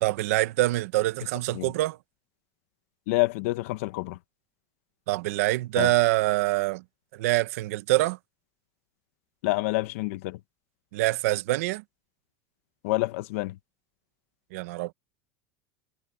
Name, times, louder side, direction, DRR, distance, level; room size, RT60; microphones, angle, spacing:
voice 1, 0.0-2.0 5.1-6.8 7.1-8.2 10.9-11.8 14.5-14.9, right 18 dB, 80° right, 1.3 m, -25 dB
voice 2, 3.1-4.2 5.8-5.9 9.4-10.4 12.8-13.5, left 21 dB, 70° left, 1.2 m, -27 dB
cardioid pair, 170°, 8 cm